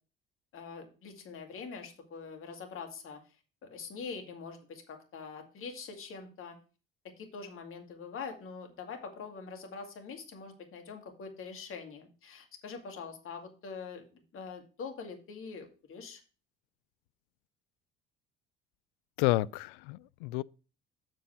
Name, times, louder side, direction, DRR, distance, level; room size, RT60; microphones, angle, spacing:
voice 1, 0.5-3.2 3.7-6.6 7.2-16.2, left 5 dB, 45° left, 2.3 m, -44 dB
voice 2, 19.2-20.4, left 19 dB, 60° left, 0.4 m, -30 dB
7.7 x 6.4 x 4.7 m
figure-of-eight pair, 55°, 29 cm